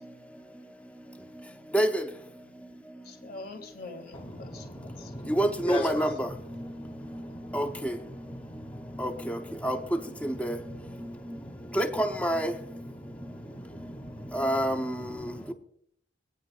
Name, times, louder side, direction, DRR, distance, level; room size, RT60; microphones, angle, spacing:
voice 1, 3.0-5.1 7.3-7.4, left 3 dB, 50° left, 2.1 m, -44 dB
voice 2, 4.1-11.8 12.5-15.5, left 1 dB, 25° left, 2.1 m, -41 dB
voice 3, 5.4-6.1 7.5-7.7 9.0-9.1 9.6-9.8 10.2-10.5 11.8-12.5 14.3-14.9, right 1 dB, 5° left, 0.8 m, -26 dB
23.5 x 9.4 x 2.4 m
head